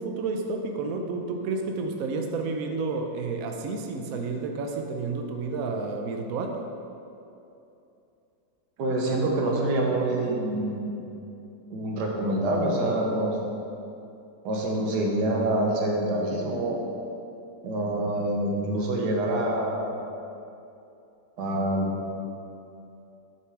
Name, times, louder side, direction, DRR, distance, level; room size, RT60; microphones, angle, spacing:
voice 1, 0.0-6.6, right 3 dB, 65° right, 3 dB, 1.0 m, -30 dB
voice 2, 8.8-11.0 11.7-13.4 14.4-16.8 17.6-20.0 21.4-22.0, right 1 dB, 90° right, 0 dB, 1.6 m, -26 dB
6.3 x 5.9 x 4.6 m, 2.8 s
omnidirectional pair, 1.8 m